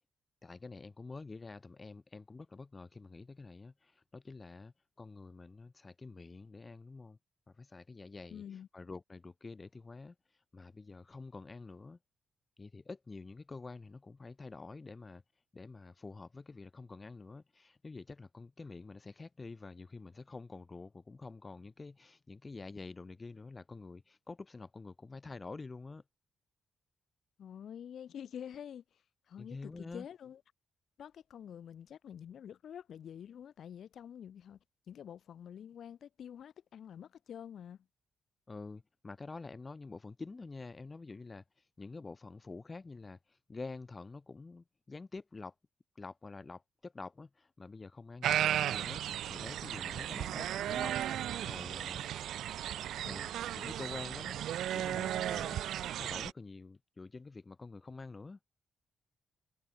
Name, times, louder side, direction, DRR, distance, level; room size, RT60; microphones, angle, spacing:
voice 1, 0.4-7.2 7.5-8.4 8.7-12.0 12.6-15.2 15.5-26.0 29.4-30.0 38.5-45.5 45.9-52.2 53.0-54.4 54.7-58.4, left 3 dB, 25° left, 3.0 m, -48 dB
voice 2, 8.3-8.7 27.4-30.4 31.0-34.6 34.9-37.9, left 9 dB, 65° left, 5.1 m, -48 dB
sound 1, 48.2-56.3, right 11 dB, 90° right, 0.3 m, -35 dB
cardioid pair, 130°, 0 cm